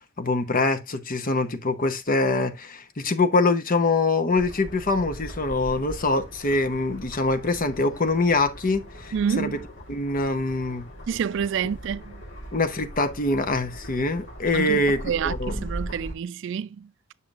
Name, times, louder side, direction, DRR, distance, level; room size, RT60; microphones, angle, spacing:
voice 1, 0.2-9.5 9.9-10.9 12.5-15.0 15.2-15.5, left 3 dB, 45° left, 0.8 m, -24 dB
sound 1, 4.4-16.1, right 1 dB, 65° left, 2.1 m, -39 dB
voice 2, 9.1-9.7 11.1-12.2 14.5-16.9, right 7 dB, 65° right, 0.3 m, -28 dB
7.1 x 6.6 x 2.4 m
head